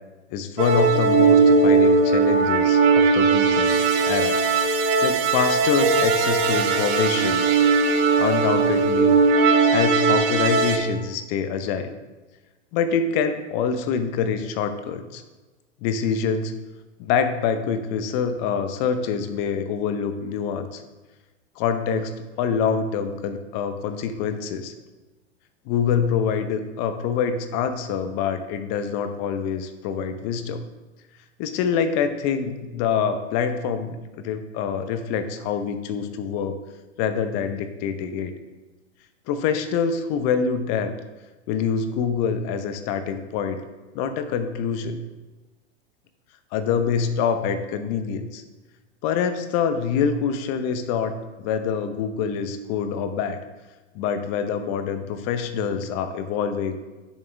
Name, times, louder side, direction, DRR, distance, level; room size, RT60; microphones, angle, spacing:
voice 1, 0.3-3.8 4.0-4.4 5.0-7.4 8.2-9.2 9.7-11.9 12.7-15.2 15.8-16.5 17.0-20.8 21.6-24.7 25.7-30.6 31.4-36.6 37.0-38.4 39.3-41.0 41.5-43.6 43.9-45.0 46.5-48.4 49.0-51.1 51.4-53.4 53.9-56.8, left 6 dB, 45° left, 9 dB, 1.0 m, -25 dB
sound 1, 0.6-10.8, right 4 dB, 50° right, 1.3 m, -19 dB
10.0 x 7.4 x 3.5 m, 1.2 s
hypercardioid pair, 100°, 36 cm